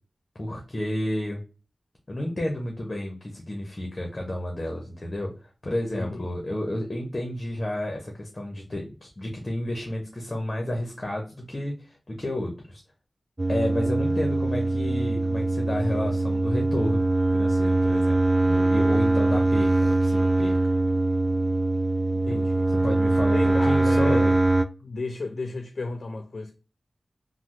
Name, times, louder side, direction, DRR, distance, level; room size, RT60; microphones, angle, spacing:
voice 1, 0.3-1.4 2.1-5.3 5.6-12.8 13.5-17.1 17.3-20.6 22.7-24.4, left 1 dB, 30° left, 0.8 m, -31 dB
voice 2, 5.9-6.3 22.1-22.7 23.3-24.3 24.8-26.5, left 3 dB, 60° left, 0.4 m, -33 dB
sound 1, 13.4-24.7, right 2 dB, 30° right, 0.3 m, -22 dB
3.3 x 2.1 x 2.9 m
wide cardioid pair, 75°, 0 cm